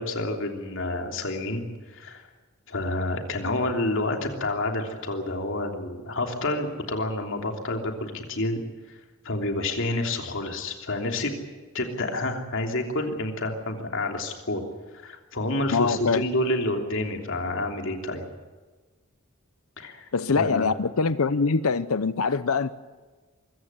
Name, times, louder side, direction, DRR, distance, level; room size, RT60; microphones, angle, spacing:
voice 1, 0.0-1.6 1.9-2.3 2.7-8.6 8.9-9.0 9.2-11.3 11.7-14.6 15.0-18.3 19.8-20.1 20.4-20.7, left 2 dB, 65° left, 3 dB, 3.1 m, -29 dB
voice 2, 15.7-16.2 20.1-22.7, left 4 dB, 80° left, 14 dB, 0.7 m, -24 dB
24.0 x 15.0 x 9.8 m, 1.3 s
head